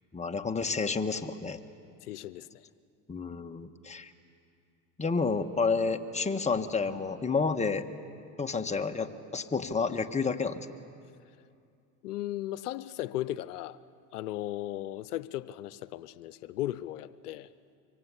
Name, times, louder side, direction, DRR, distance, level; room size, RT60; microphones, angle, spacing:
voice 1, 0.1-1.6 3.1-4.1 5.0-7.8 8.4-10.7, left 4 dB, 15° left, 6 dB, 1.5 m, -30 dB
voice 2, 2.0-2.7 12.0-13.8 14.1-17.5, left 14 dB, 85° left, 16 dB, 0.7 m, -36 dB
24.5 x 23.5 x 9.9 m, 2.5 s
hypercardioid pair, 85°, 45 cm